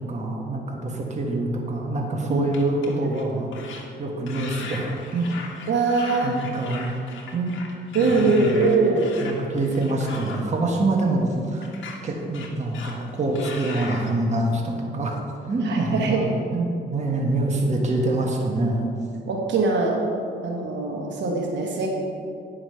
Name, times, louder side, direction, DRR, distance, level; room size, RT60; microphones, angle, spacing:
voice 1, 0.0-5.3 6.2-6.9 7.3-7.5 8.0-8.6 9.2-11.7 12.0-15.2 15.4-18.9, right 2 dB, 35° right, 0 dB, 1.5 m, -25 dB
sound 1, 2.5-3.2 3.5-3.8 4.3-10.4 11.6-12.0 12.3-13.1 13.4-14.1, left 4 dB, 75° left, 1.3 m, -38 dB
voice 2, 5.7-6.4 7.9-9.1 15.6-16.3 19.3-20.0 20.4-21.9, right 3 dB, 65° right, 0 dB, 1.5 m, -22 dB
9.8 x 5.7 x 5.6 m, 2.4 s
cardioid pair, 90°, 20 cm